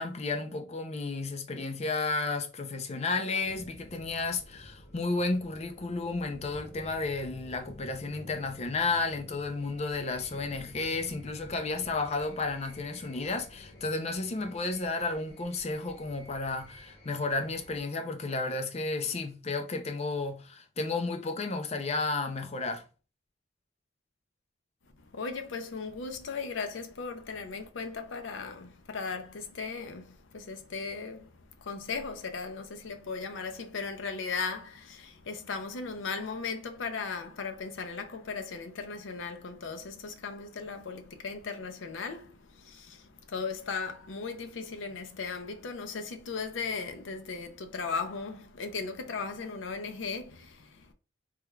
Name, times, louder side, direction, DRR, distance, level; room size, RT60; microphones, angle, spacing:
voice 1, 0.0-22.8, left 3 dB, 35° left, 0.5 m, -32 dB
sound 1, 3.4-17.8, left 1 dB, 60° left, 0.9 m, -51 dB
voice 2, 25.1-31.3 31.6-50.9, left 4 dB, 90° left, 0.6 m, -37 dB
3.5 x 3.2 x 2.2 m
head